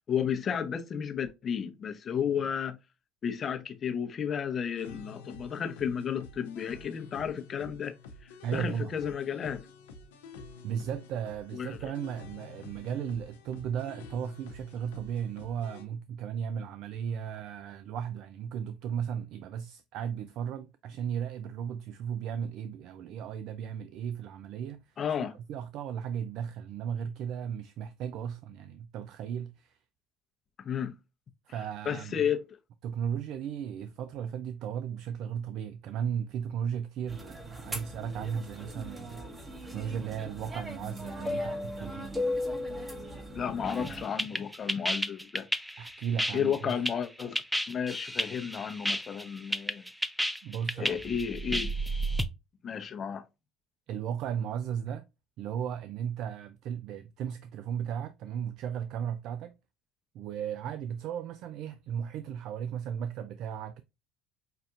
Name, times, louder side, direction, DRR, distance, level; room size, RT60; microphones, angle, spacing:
voice 1, 0.0-2.8 3.2-7.9 8.5-9.7 11.5-11.9 25.0-25.4 30.6-30.9 31.9-32.4 43.3-45.5 46.3-47.3 47.7-49.9 50.8-51.7 52.6-53.2, left 8 dB, 40° left, 0.8 m, -32 dB
sound 1, 4.8-15.9, left 4 dB, 85° left, 0.7 m, -49 dB
voice 2, 8.4-8.9 10.6-29.8 31.5-32.2 32.8-39.2 39.7-42.1 45.8-46.7 50.4-51.2 53.9-55.1 55.4-59.6 60.1-63.8, right 8 dB, 65° right, 0.4 m, -35 dB
sound 2, 37.1-44.0, left 1 dB, 15° right, 1.2 m, -37 dB
sound 3, 43.7-52.3, equal, ahead, 0.5 m, -32 dB
5.6 x 2.6 x 2.4 m
hypercardioid pair, 75°, 0 cm